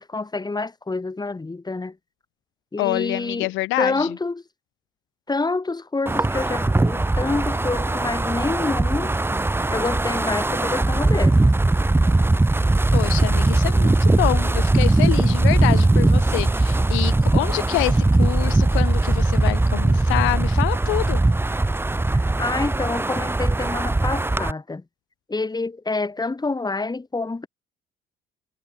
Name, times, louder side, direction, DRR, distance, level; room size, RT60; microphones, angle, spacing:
voice 1, 0.0-2.0 2.7-3.5 3.7-4.4 5.3-9.2 9.7-11.4 22.4-24.8 25.3-27.5, left 3 dB, 20° left, 4.9 m, -27 dB
voice 2, 2.8-4.1 12.9-21.2, left 21 dB, 85° left, 1.4 m, -26 dB
Wind, 6.1-24.5, right 2 dB, 10° right, 1.1 m, -20 dB
supercardioid pair, 75°, 20 cm